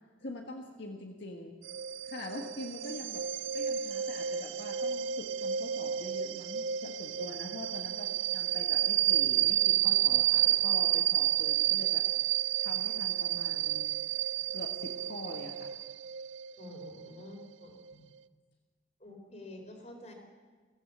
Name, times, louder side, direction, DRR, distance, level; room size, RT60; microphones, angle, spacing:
voice 1, 0.2-1.6 2.0-3.3 3.5-12.0 12.6-14.0 14.5-15.7 17.9-18.1, left 1 dB, 65° left, 1 dB, 1.7 m, -44 dB
sound 1, 1.6-17.9, right 12 dB, 85° right, 0.6 m, -30 dB
voice 2, 16.6-17.7 19.0-20.1, left 1 dB, 35° left, 3 dB, 3.9 m, -48 dB
23.0 x 16.5 x 7.5 m, 1.5 s
head